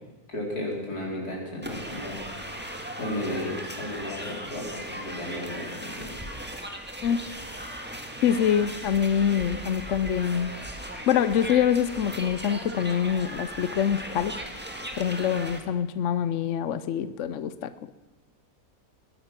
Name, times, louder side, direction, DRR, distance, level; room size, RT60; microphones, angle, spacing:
voice 1, 0.3-2.6 3.0-6.2, left 1 dB, 80° left, -1 dB, 4.7 m, -34 dB
sound 1, 1.6-15.6, right 1 dB, 5° right, 1.6 m, -38 dB
voice 2, 8.2-10.5 11.1-14.3 15.0-17.7, left 8 dB, 60° left, 13 dB, 0.9 m, -25 dB
21.0 x 11.5 x 5.8 m, 1.2 s
omnidirectional pair, 1.6 m